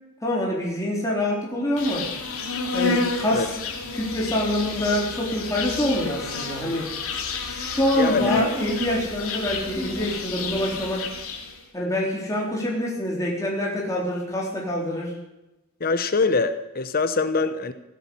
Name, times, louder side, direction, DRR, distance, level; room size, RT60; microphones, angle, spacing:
voice 1, 0.2-2.1 2.7-3.5 3.9-7.0 7.4-11.1 11.7-15.1, left 1 dB, 15° left, -3 dB, 3.9 m, -26 dB
Insect, 1.8-11.6, left 4 dB, 70° left, 2.7 m, -30 dB
voice 2, 7.9-8.3 15.8-17.7, left 4 dB, 45° left, 11 dB, 0.9 m, -23 dB
16.0 x 10.0 x 8.6 m, 0.97 s
head